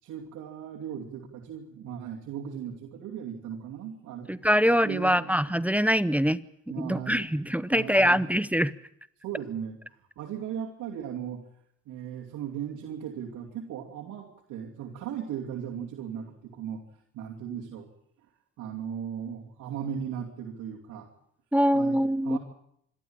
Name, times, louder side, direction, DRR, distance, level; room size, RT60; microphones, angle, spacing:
voice 1, 0.0-4.3 4.8-5.6 6.7-7.3 7.7-8.3 9.2-9.8 10.2-11.4 11.9-16.8 17.1-17.9 18.6-21.1 21.7-22.4, right 8 dB, 90° right, -2 dB, 2.8 m, -37 dB
voice 2, 4.3-6.4 6.8-8.7 21.5-22.4, equal, 5° right, 17 dB, 0.7 m, -24 dB
26.0 x 12.5 x 8.8 m, 0.72 s
cardioid pair, 90°, 30 cm